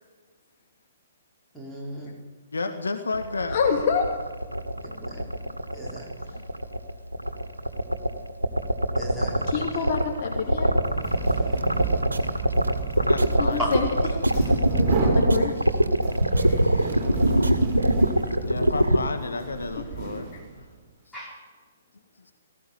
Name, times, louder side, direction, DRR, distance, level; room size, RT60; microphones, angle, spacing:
voice 1, 1.5-2.2 4.8-5.5 5.7-6.1 9.0-9.6 21.1-21.4, right 1 dB, 5° left, -4 dB, 5.4 m, -39 dB
voice 2, 2.5-3.6 12.9-13.8 17.6-17.7 18.3-20.3 21.1-21.2, left 3 dB, 70° left, 6 dB, 1.8 m, -31 dB
sound 1, 3.1-19.0, right 1 dB, 85° right, 1.6 m, -22 dB
voice 3, 3.5-4.0 6.3-6.4 9.5-10.8 13.4-13.9 14.1-15.5 16.3-16.8 19.7-19.8 20.3-20.4, left 6 dB, 40° left, 2 dB, 2.4 m, -28 dB
sound 2, 10.7-20.7, right 4 dB, 25° right, 4.2 m, -32 dB
sound 3, 11.6-17.9, right 3 dB, 70° right, 2.0 m, -40 dB
18.5 x 15.0 x 9.3 m, 1.4 s
figure-of-eight pair, 125°, 0 cm